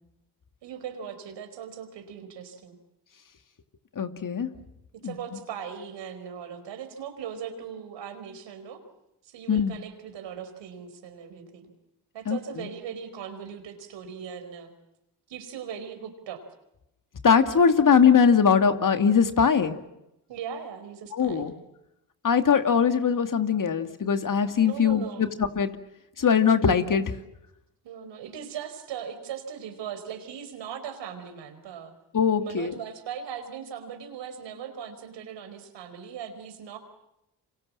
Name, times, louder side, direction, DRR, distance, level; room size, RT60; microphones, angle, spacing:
voice 1, 0.6-2.8 4.9-8.8 9.2-11.7 12.1-14.7 15.3-16.4 20.3-21.5 24.6-25.2 27.8-31.9 32.4-36.8, right 8 dB, 80° right, 8 dB, 4.6 m, -39 dB
voice 2, 4.0-4.5 5.0-5.2 9.5-9.7 12.3-12.7 17.2-19.8 21.1-21.5 22.2-25.7 26.2-27.1 32.1-32.7, left 6 dB, 45° left, 8 dB, 2.4 m, -21 dB
29.0 x 26.5 x 7.5 m, 0.88 s
supercardioid pair, 55°, 43 cm